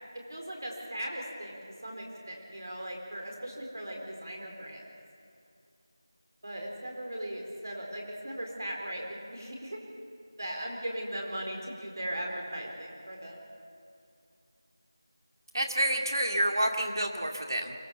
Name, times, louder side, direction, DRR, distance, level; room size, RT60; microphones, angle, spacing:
voice 1, 0.1-4.9 6.4-9.8 10.4-13.5, right 1 dB, 45° right, 0 dB, 4.2 m, -38 dB
voice 2, 15.5-17.7, right 1 dB, 65° right, 3 dB, 2.2 m, -28 dB
24.0 x 17.5 x 7.0 m, 2.5 s
figure-of-eight pair, 180°, 2 cm